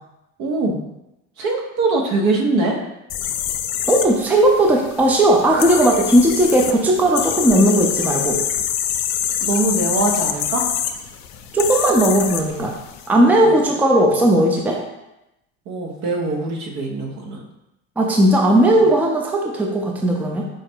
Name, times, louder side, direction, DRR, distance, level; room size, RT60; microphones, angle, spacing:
voice 1, 0.4-0.8 1.4-2.8 9.4-10.6 13.1-13.4 15.7-17.4, right 3 dB, 60° right, 2 dB, 1.0 m, -22 dB
sound 1, 3.1-13.1, left 10 dB, 70° left, 0.5 m, -26 dB
voice 2, 3.9-8.4 11.5-12.8 13.1-14.8 18.0-20.5, right 1 dB, 5° right, 0 dB, 0.5 m, -16 dB
4.8 x 2.1 x 4.4 m, 0.92 s
supercardioid pair, 100°, 32 cm